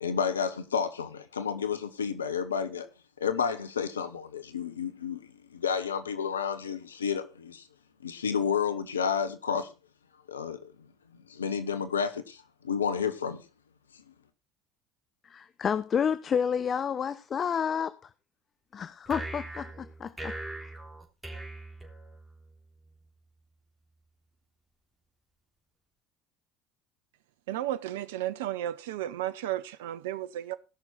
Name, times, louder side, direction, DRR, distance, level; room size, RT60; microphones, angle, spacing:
voice 1, 0.0-2.9 3.2-5.2 5.5-7.6 8.0-9.7 10.3-10.7 11.3-13.4, left 6 dB, 90° left, 1.0 m, -31 dB
voice 2, 15.2-18.1 18.7-20.3 20.6-20.7, left 7 dB, 40° left, 0.6 m, -30 dB
sound 1, 19.1-22.5, right 1 dB, 15° right, 3.4 m, -40 dB
voice 3, 27.5-30.6, right 13 dB, 75° right, 0.6 m, -33 dB
18.5 x 6.2 x 4.0 m
hypercardioid pair, 70°, 0 cm